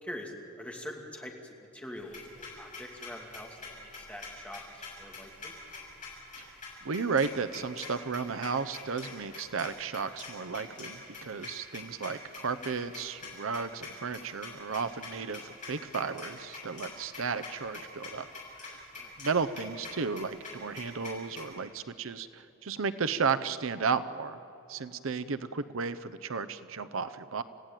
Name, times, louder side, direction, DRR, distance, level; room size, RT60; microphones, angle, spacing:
voice 1, 0.0-1.3 1.7-5.5 18.9-19.1, left 1 dB, 5° left, 0 dB, 2.7 m, -44 dB
sound 1, 2.0-21.4, left 4 dB, 40° left, 7.8 m, -45 dB
voice 2, 6.8-18.3 18.6-18.8 19.2-24.4 24.7-27.4, right 5 dB, 70° right, 12 dB, 0.7 m, -33 dB
30.0 x 16.0 x 9.1 m, 3.0 s
head